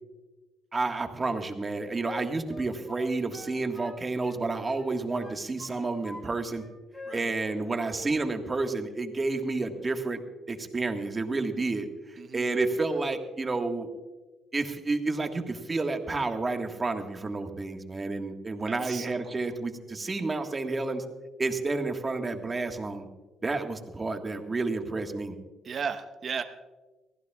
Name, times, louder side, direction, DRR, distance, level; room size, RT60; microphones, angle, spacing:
voice 1, 0.7-6.6 7.1-10.2 10.5-13.9 14.5-21.0 21.4-23.1 23.4-25.3, right 3 dB, 25° right, 4 dB, 1.6 m, -30 dB
Wind instrument woodwind instrument, 1.2-4.4 4.7-6.2 6.5-7.6 7.9-8.1, left 2 dB, 30° left, 3.7 m, -45 dB
voice 2, 12.2-12.5 18.7-19.5 25.6-26.4, right 6 dB, 50° right, 7 dB, 1.0 m, -36 dB
23.5 x 15.0 x 2.4 m, 1.2 s
cardioid pair, 90°, 0 cm